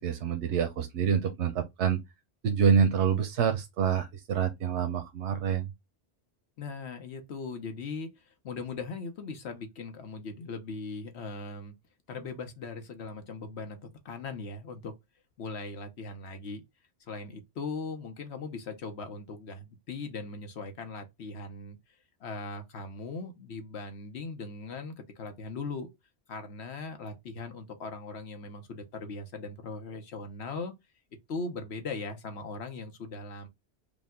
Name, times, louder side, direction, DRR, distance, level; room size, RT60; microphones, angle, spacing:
voice 1, 0.0-2.0 2.4-5.7, right 7 dB, 90° right, 1.0 m, -27 dB
voice 2, 6.6-11.7 12.1-14.9 15.4-16.6 17.1-21.8 22.2-25.9 26.3-30.7 31.3-33.5, left 4 dB, 75° left, 1.1 m, -39 dB
5.1 x 2.2 x 3.6 m
omnidirectional pair, 1.1 m